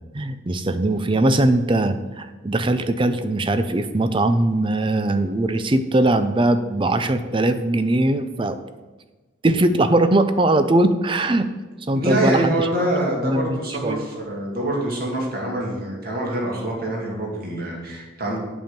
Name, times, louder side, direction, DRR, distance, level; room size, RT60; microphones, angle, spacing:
voice 1, 0.1-8.6 9.4-11.5 11.9-12.7 13.2-13.6 13.8-14.0, right 2 dB, 25° right, 11 dB, 0.5 m, -20 dB
voice 2, 11.9-18.4, right 1 dB, 50° right, -1 dB, 2.3 m, -25 dB
8.2 x 5.2 x 7.4 m, 1.2 s
head